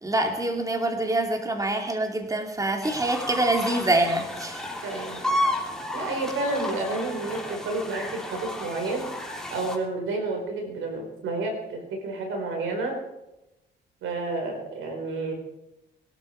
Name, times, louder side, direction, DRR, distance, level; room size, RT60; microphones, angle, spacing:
voice 1, 0.0-4.6, right 2 dB, 15° right, 3 dB, 2.7 m, -25 dB
sound 1, 2.8-9.8, left 1 dB, 5° left, 3.4 m, -32 dB
voice 2, 4.8-5.3 5.9-9.1 9.5-13.0 14.0-15.3, right 2 dB, 85° right, 3 dB, 4.7 m, -30 dB
23.0 x 12.5 x 4.7 m, 0.95 s
cardioid pair, 90°, 20 cm